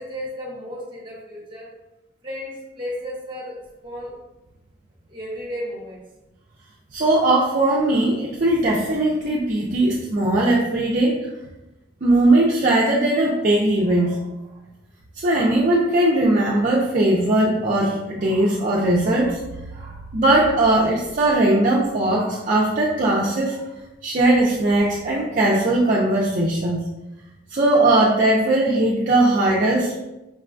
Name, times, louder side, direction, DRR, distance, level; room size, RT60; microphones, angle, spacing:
voice 1, 0.0-1.7 2.2-4.2 5.1-6.0, equal, 25° right, -3 dB, 0.9 m, -33 dB
voice 2, 6.9-11.3 12.0-14.2 15.2-19.4 19.7-23.6 24.0-26.8 27.5-30.0, right 1 dB, 45° right, -4 dB, 0.5 m, -19 dB
5.2 x 2.2 x 2.5 m, 0.96 s
head